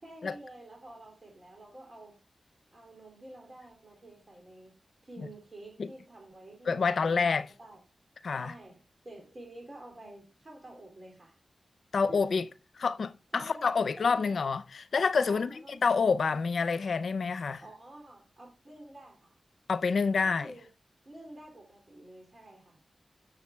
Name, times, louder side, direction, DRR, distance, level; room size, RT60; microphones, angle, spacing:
voice 1, 0.0-2.2 2.7-4.8 5.0-7.8 8.3-11.3 12.0-12.4 13.3-14.5 15.3-15.8 17.6-19.4 20.2-20.7 21.0-22.8, right 1 dB, 45° right, 2.7 m, -50 dB
voice 2, 6.7-7.5 8.2-8.5 11.9-12.5 12.8-15.6 15.8-17.6 19.7-20.5, left 5 dB, 80° left, 0.5 m, -28 dB
14.0 x 6.8 x 2.3 m
cardioid pair, 60°, 0 cm